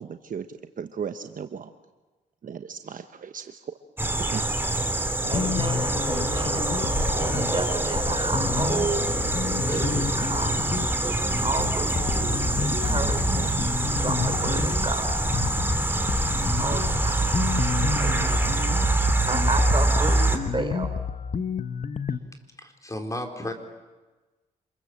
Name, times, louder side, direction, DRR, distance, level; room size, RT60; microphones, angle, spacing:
voice 1, 0.0-1.7 2.4-3.7 4.3-4.5, right 7 dB, 55° right, 8 dB, 1.1 m, -36 dB
sound 1, 4.0-20.4, right 2 dB, 15° right, 2.8 m, -25 dB
sound 2, 5.2-22.2, left 6 dB, 45° left, 1.2 m, -30 dB
voice 2, 5.3-9.1 9.7-10.6 11.0-13.5 14.0-15.2 16.6-17.3 18.0-18.5 19.2-20.9, right 3 dB, 30° right, 7 dB, 4.1 m, -32 dB
voice 3, 22.6-23.5, left 1 dB, 20° left, 4 dB, 3.9 m, -33 dB
26.5 x 21.0 x 7.5 m, 1.2 s
cardioid pair, 65°, 17 cm